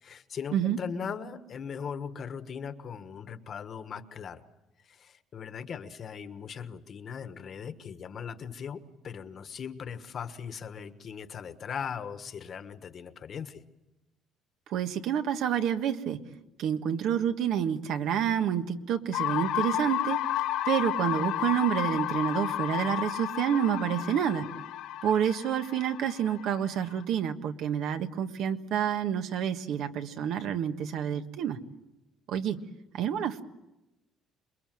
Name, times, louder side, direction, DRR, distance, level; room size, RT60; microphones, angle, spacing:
voice 1, 0.0-4.4 4.9-13.6, left 7 dB, 40° left, 10 dB, 1.4 m, -39 dB
voice 2, 14.7-16.2 16.6-20.2 20.6-24.5 25.0-31.6 32.3-32.6 32.9-33.4, right 9 dB, 70° right, 8 dB, 1.5 m, -28 dB
sound 1, 19.1-27.0, left 13 dB, 80° left, 2.2 m, -32 dB
27.5 x 22.0 x 7.7 m, 0.96 s
cardioid pair, 125°, 0 cm